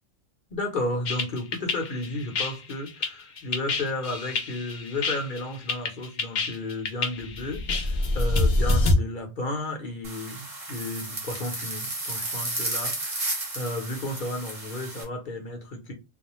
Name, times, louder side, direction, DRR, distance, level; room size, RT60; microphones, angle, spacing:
voice 1, 0.5-15.9, left 2 dB, 45° left, 0.8 m, -33 dB
sound 1, 1.1-8.9, left 2 dB, 65° left, 0.4 m, -26 dB
sound 2, 10.0-15.0, right 2 dB, 30° right, 0.8 m, -33 dB
2.4 x 2.1 x 3.0 m
omnidirectional pair, 1.3 m